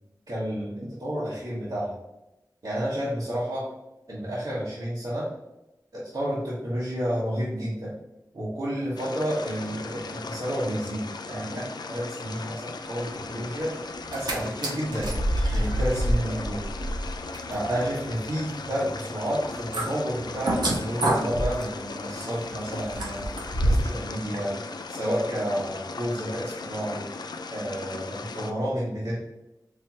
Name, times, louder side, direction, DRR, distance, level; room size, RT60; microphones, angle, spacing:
voice 1, 0.3-2.0 2.6-3.7 4.1-5.3 5.9-7.9 8.3-13.7 14.1-15.1 15.5-16.6 17.5-23.3 23.6-24.6 24.9-27.0 27.5-29.2, equal, 70° right, -9 dB, 1.2 m, -30 dB
sound 1, 9.0-28.5, left 4 dB, 75° left, 0.3 m, -38 dB
sound 2, 14.0-14.3 14.6-24.0 24.3-24.4, right 1 dB, 90° right, 0.8 m, -28 dB
4.4 x 3.3 x 2.9 m, 0.96 s
wide cardioid pair, 50°, 7 cm